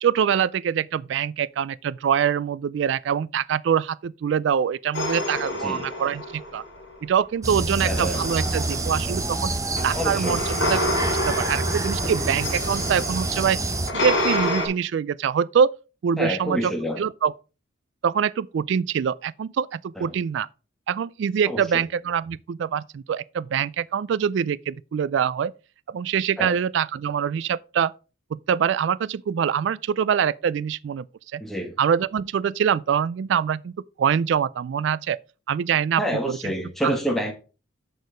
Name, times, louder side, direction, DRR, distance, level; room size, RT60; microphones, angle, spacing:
voice 1, 0.0-6.6 7.0-9.5 9.8-10.8 11.1-13.6 13.9-15.7 16.0-16.7 17.0-17.3 18.0-20.5 20.9-25.5 25.9-27.9 28.3-31.1 31.3-31.4 31.8-33.7 34.0-35.2 35.5-36.4 36.8-36.9, right 8 dB, 60° right, 0.3 m, -24 dB
sound 1, 4.9-7.0 7.9-14.7, left 1 dB, 65° left, 3.6 m, -29 dB
sound 2, 7.4-13.9, right 2 dB, 15° right, 0.8 m, -27 dB
voice 2, 7.8-8.2 9.9-10.4 16.2-17.0 20.0-20.1 21.5-21.8 26.4-26.5 31.4-31.8 36.0-37.3, equal, ahead, 1.5 m, -28 dB
6.6 x 6.4 x 5.1 m
head